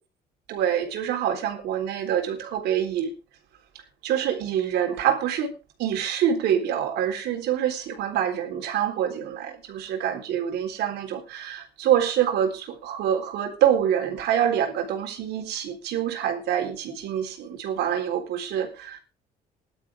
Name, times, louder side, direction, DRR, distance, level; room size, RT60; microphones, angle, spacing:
voice 1, 0.5-3.1 4.0-5.5 5.8-19.0, right 9 dB, 80° right, 3.9 m, -26 dB
18.0 x 12.0 x 3.6 m
cardioid pair, 110°, 17 cm